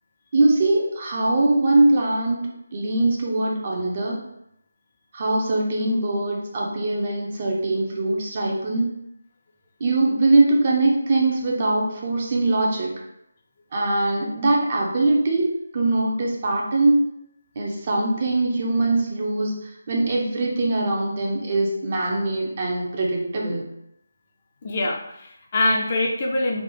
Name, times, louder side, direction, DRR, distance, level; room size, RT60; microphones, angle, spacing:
voice 1, 0.3-4.2 5.1-8.9 9.8-12.9 13.7-17.1 17.6-23.6, right 2 dB, 40° right, -1 dB, 0.8 m, -22 dB
voice 2, 24.6-26.6, left 2 dB, 35° left, 1 dB, 0.5 m, -24 dB
3.6 x 2.4 x 3.7 m, 0.78 s
figure-of-eight pair, 155°, 0 cm